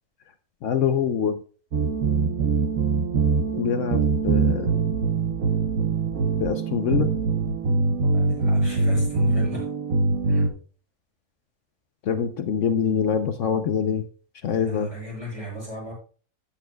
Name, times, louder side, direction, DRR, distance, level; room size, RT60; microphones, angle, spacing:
voice 1, 0.6-1.4 3.6-4.7 6.4-7.1 12.1-14.0 14.4-14.9, left 7 dB, 65° left, 9 dB, 1.0 m, -24 dB
sound 1, 1.7-10.5, right 4 dB, 80° right, 1.5 m, -23 dB
voice 2, 8.1-9.6 10.3-10.5 14.6-15.9, left 1 dB, 25° right, -3 dB, 6.0 m, -36 dB
14.0 x 8.6 x 2.2 m, 0.40 s
omnidirectional pair, 1.5 m